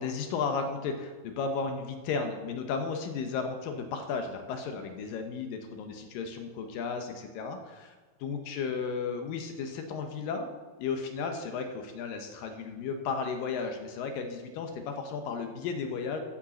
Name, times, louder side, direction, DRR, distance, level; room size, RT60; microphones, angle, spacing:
voice 1, 0.0-8.0 8.2-10.5 10.8-16.2, left 5 dB, 70° left, 5 dB, 2.5 m, -34 dB
12.5 x 5.3 x 7.0 m, 1.3 s
omnidirectional pair, 4.5 m